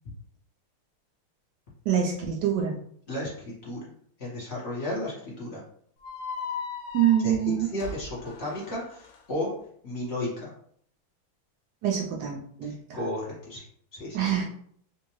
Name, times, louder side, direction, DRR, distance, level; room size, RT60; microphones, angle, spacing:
voice 1, 1.9-2.8 6.9-7.7 11.8-13.0 14.1-14.4, right 9 dB, 80° right, 0 dB, 1.0 m, -25 dB
voice 2, 4.2-5.6 7.2-9.5 9.8-10.5 12.6-13.6 13.9-14.2, left 1 dB, 35° left, -6 dB, 1.4 m, -33 dB
sound 1, 6.0-9.2, left 5 dB, 75° left, 1.2 m, -38 dB
3.5 x 2.7 x 3.0 m, 0.63 s
omnidirectional pair, 2.4 m